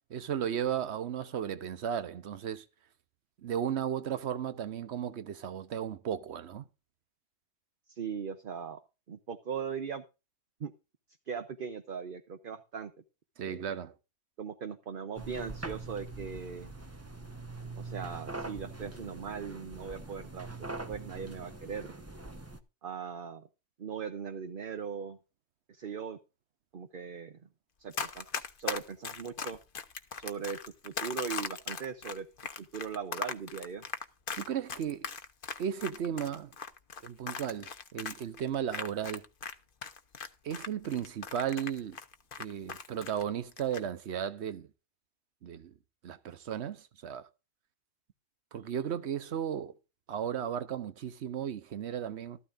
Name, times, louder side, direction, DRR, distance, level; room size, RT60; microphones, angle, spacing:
voice 1, 0.1-2.6 3.4-6.6 13.4-13.9 34.4-35.1 35.6-36.5 37.0-39.2 40.4-42.0 42.4-44.7 45.4-45.7 46.0-47.3 48.5-49.8 50.1-52.4, right 9 dB, 80° right, 1.1 m, -35 dB
voice 2, 7.9-8.8 9.1-10.0 10.6-10.7 11.3-12.9 13.4-13.6 14.4-16.7 17.8-21.9 22.8-23.5 23.8-25.2 25.7-26.2 26.7-27.4 27.8-28.3 28.6-29.6 30.2-32.3 32.6-33.8, right 6 dB, 55° right, 1.0 m, -39 dB
sound 1, 15.1-22.6, right 3 dB, 15° right, 0.9 m, -43 dB
Run, 27.9-39.5 39.8-43.2 43.5-43.8, left 6 dB, 55° left, 1.1 m, -38 dB
13.5 x 12.5 x 2.6 m
omnidirectional pair, 1.1 m